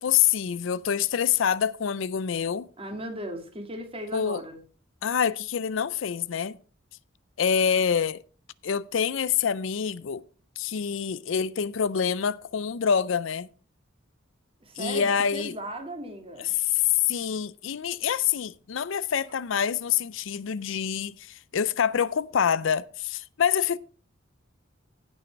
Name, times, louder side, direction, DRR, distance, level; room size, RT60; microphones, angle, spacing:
voice 1, 0.0-2.7 4.1-4.4 5.0-6.6 7.4-8.2 8.6-10.2 10.6-13.5 14.8-15.5 16.4-16.5 17.1-23.8, left 7 dB, 70° left, 0.5 m, -26 dB
voice 2, 2.8-4.6 14.6-16.6, right 1 dB, 30° right, 2.4 m, -37 dB
16.5 x 6.3 x 4.5 m
head